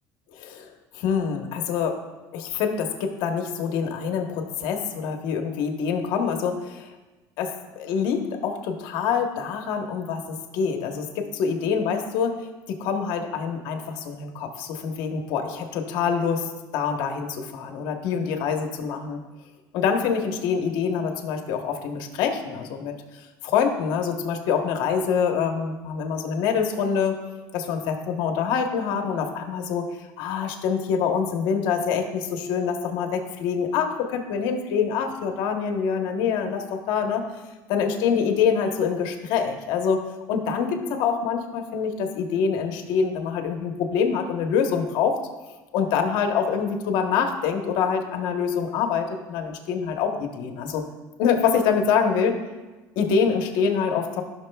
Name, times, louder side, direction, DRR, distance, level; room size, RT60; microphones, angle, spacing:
voice 1, 0.9-2.0 2.3-6.9 7.4-12.4 12.7-16.4 16.7-19.2 19.7-22.9 23.4-27.2 27.5-29.9 30.2-37.2 37.7-40.0 40.3-45.2 45.7-50.8 51.2-52.4 53.0-54.2, left 6 dB, 70° left, 4 dB, 1.0 m, -25 dB
14.5 x 6.2 x 2.3 m, 1.2 s
cardioid pair, 150°, 8 cm